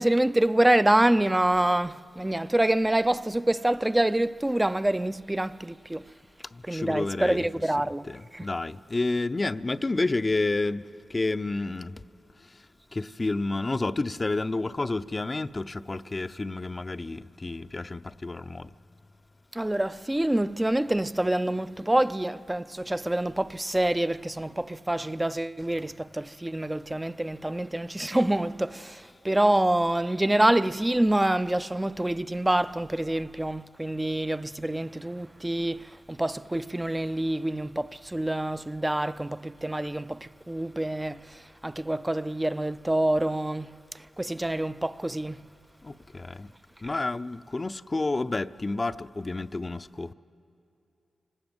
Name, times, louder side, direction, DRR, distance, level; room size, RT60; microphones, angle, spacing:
voice 1, 0.0-6.1 6.7-8.0 8.3-8.5 19.5-45.4, right 1 dB, 15° right, 0.6 m, -26 dB
voice 2, 6.7-7.5 8.1-10.8 11.1-11.9 12.9-18.7 46.1-46.5 46.8-50.1, left 2 dB, 40° left, 0.7 m, -30 dB
26.5 x 20.0 x 8.0 m
supercardioid pair, 40°, 0 cm